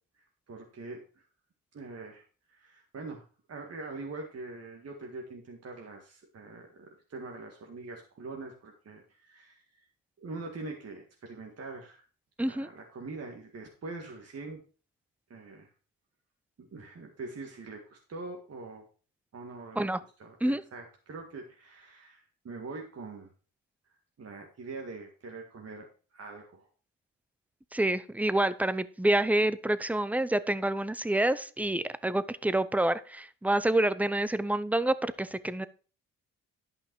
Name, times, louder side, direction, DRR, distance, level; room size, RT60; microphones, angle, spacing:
voice 1, 0.2-1.2 1.7-2.2 2.5-9.9 10.2-12.0 12.4-14.6 15.3-15.7 16.6-18.8 19.3-19.9 20.2-23.3 24.2-26.7, right 3 dB, 45° right, 1 dB, 1.9 m, -43 dB
voice 2, 12.4-12.7 19.8-20.0 20.4-20.6 27.7-35.7, right 1 dB, 5° right, 15 dB, 0.7 m, -27 dB
11.0 x 5.7 x 4.6 m, 0.38 s
supercardioid pair, 70°, 35 cm